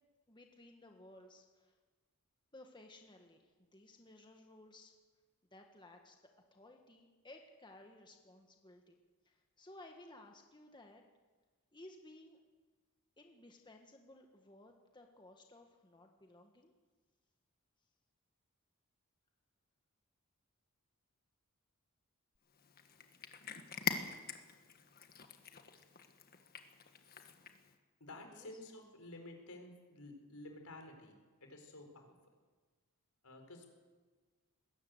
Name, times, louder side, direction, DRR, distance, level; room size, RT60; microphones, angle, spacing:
voice 1, 0.3-1.8 2.5-4.9 5.5-6.2 6.5-9.0 9.2-11.0 11.7-12.4 13.2-16.7 28.3-28.5, left 1 dB, 20° left, 3 dB, 1.6 m, -58 dB
Cat, 22.5-27.7, left 6 dB, 45° left, 1.5 m, -44 dB
voice 2, 28.0-32.2 33.2-33.7, left 2 dB, 80° left, 4 dB, 4.3 m, -52 dB
20.5 x 17.0 x 7.9 m, 1.4 s
head